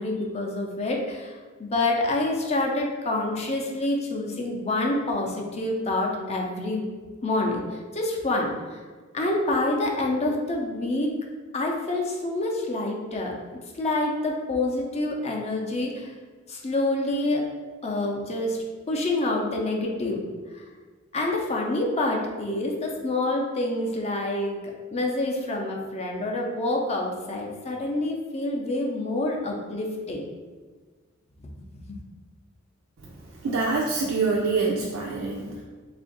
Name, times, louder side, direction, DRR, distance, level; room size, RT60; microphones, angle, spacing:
voice 1, 0.0-6.9 7.2-7.6 7.9-8.8 9.1-11.1 11.5-13.3 13.7-16.1 16.5-17.4 17.8-18.6 18.9-20.2 20.5-20.6 21.1-24.6 24.9-30.2 31.9-32.0, left 2 dB, 30° left, 0 dB, 0.5 m, -27 dB
voice 2, 33.4-35.6, right 4 dB, 75° right, -3 dB, 0.4 m, -25 dB
3.4 x 2.5 x 3.8 m, 1.4 s
head